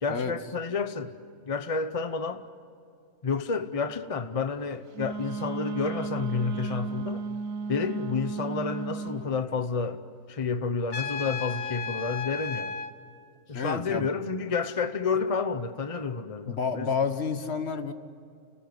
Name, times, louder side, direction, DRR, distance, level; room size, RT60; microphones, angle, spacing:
voice 1, 0.0-1.1 1.5-2.4 3.2-7.2 7.7-10.0 10.3-12.8 13.5-16.9, left 5 dB, 30° left, 0.8 m, -30 dB
Wind instrument woodwind instrument, 4.9-9.3, right 4 dB, 80° right, 1.3 m, -34 dB
Trumpet, 10.9-12.9, left 5 dB, 85° left, 1.7 m, -34 dB
voice 2, 13.5-14.1 16.4-17.9, left 5 dB, 55° left, 1.5 m, -29 dB
30.0 x 19.5 x 9.6 m
omnidirectional pair, 1.4 m